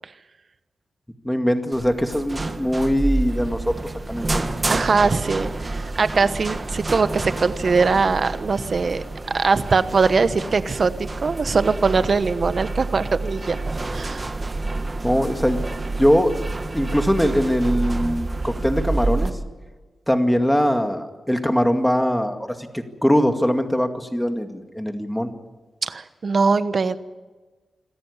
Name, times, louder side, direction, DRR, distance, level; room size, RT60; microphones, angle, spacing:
voice 1, 1.2-4.4 15.0-15.6 16.0-16.3 16.7-19.3 20.1-25.3, equal, 5° left, 6 dB, 2.1 m, -21 dB
sound 1, 1.7-19.3, right 2 dB, 30° right, 1.7 m, -28 dB
voice 2, 4.7-9.0 9.3-13.6 13.9-14.2 18.4-18.5 25.8-27.0, right 4 dB, 50° right, 12 dB, 1.1 m, -21 dB
26.5 x 14.0 x 9.8 m, 1.3 s
wide cardioid pair, 95°, 0 cm